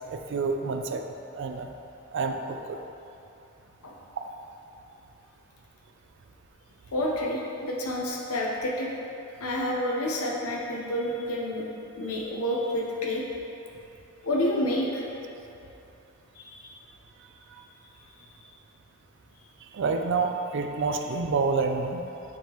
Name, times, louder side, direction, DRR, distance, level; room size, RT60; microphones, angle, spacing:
voice 1, 0.1-1.7 2.1-2.8 19.6-22.0, right 4 dB, 60° right, 5 dB, 0.4 m, -28 dB
voice 2, 6.9-8.9 9.4-11.6 12.0-13.2 14.2-15.0 16.4-16.8, left 1 dB, 90° left, -2 dB, 0.8 m, -29 dB
9.4 x 3.6 x 3.0 m, 2.8 s
head